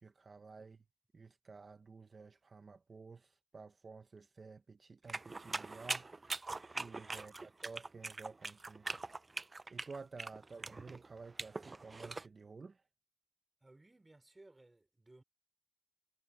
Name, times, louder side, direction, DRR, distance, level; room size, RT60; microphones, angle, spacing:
voice 1, 0.0-0.8 1.1-6.1 6.4-8.9 9.7-12.8, right 4 dB, 85° right, 0.8 m, -52 dB
sound 1, 5.1-12.3, right 3 dB, 60° right, 0.4 m, -42 dB
voice 2, 7.1-7.5 13.6-15.2, right 2 dB, 40° right, 4.8 m, -62 dB
cardioid pair, 40°, 0 cm